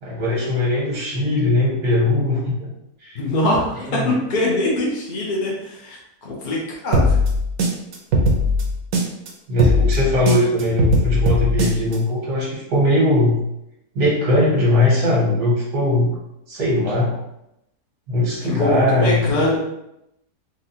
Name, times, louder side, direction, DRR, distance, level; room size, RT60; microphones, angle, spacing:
voice 1, 0.0-2.7 3.0-3.2 3.9-4.1 9.5-13.4 14.0-16.2 16.5-17.2 18.1-19.6, left 1 dB, 85° right, -5 dB, 1.7 m, -20 dB
voice 2, 3.1-6.6 6.8-7.2 18.4-19.6, left 1 dB, 50° left, -4 dB, 0.6 m, -22 dB
sound 1, 6.9-9.3 9.6-12.0, equal, 70° right, 1.0 m, -18 dB
4.0 x 2.2 x 2.7 m, 0.84 s
omnidirectional pair, 1.7 m